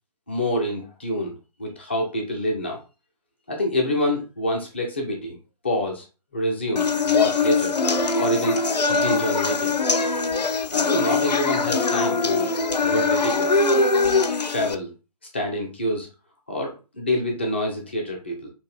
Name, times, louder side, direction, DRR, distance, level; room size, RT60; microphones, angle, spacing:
voice 1, 0.3-2.8 3.5-5.4 5.6-6.1 6.3-7.7 8.2-8.6 8.9-9.8 10.7-12.5 12.8-13.6 14.5-14.9 15.3-16.1 16.5-18.5, left 1 dB, 15° left, 0 dB, 0.4 m, -26 dB
sound 1, 6.8-14.7, left 4 dB, 85° left, 0.4 m, -22 dB
2.7 x 2.3 x 3.4 m, 0.31 s
figure-of-eight pair, 150°, 21 cm